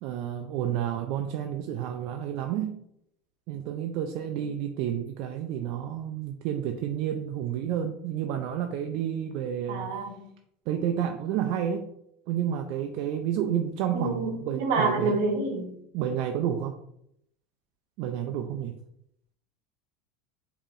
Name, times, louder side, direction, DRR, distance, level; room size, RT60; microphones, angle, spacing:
voice 1, 0.0-2.8 3.5-9.9 10.7-11.9 12.3-15.2 15.9-16.8 18.0-18.8, right 9 dB, 60° right, 5 dB, 0.3 m, -30 dB
voice 2, 9.7-10.3 13.9-15.7, right 3 dB, 75° right, 4 dB, 0.9 m, -28 dB
4.8 x 2.7 x 2.5 m, 0.74 s
supercardioid pair, 135°, 0 cm